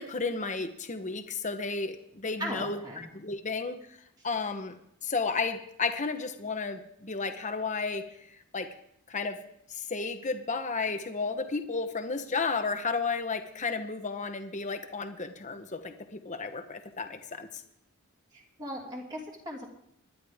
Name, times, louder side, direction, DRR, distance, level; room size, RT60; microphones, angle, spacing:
voice 1, 0.0-3.8 4.2-4.7 5.0-8.0 8.5-8.7 9.1-9.4 9.7-17.6, left 4 dB, 35° left, 7 dB, 1.1 m, -33 dB
voice 2, 2.4-3.0 18.3-19.7, equal, 20° right, -2 dB, 2.7 m, -38 dB
25.5 x 11.0 x 3.6 m, 0.74 s
head